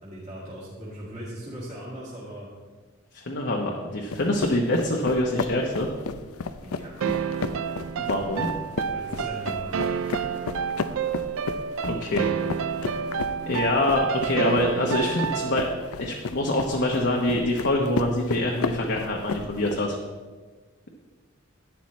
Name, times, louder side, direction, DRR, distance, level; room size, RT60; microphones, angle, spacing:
voice 1, 0.0-2.5 3.6-3.8 6.6-6.9 8.9-9.9, right 1 dB, 35° right, -8 dB, 2.1 m, -39 dB
voice 2, 3.1-5.9 8.0-8.5 11.8-12.3 12.8-13.0 13.5-15.6 16.0-20.0, left 1 dB, 55° left, -1 dB, 1.0 m, -25 dB
sound 1, 4.1-19.8, left 4 dB, 85° left, 0.5 m, -34 dB
sound 2, 7.0-15.9, right 7 dB, 65° right, 0.4 m, -29 dB
11.5 x 9.9 x 3.2 m, 1.4 s
head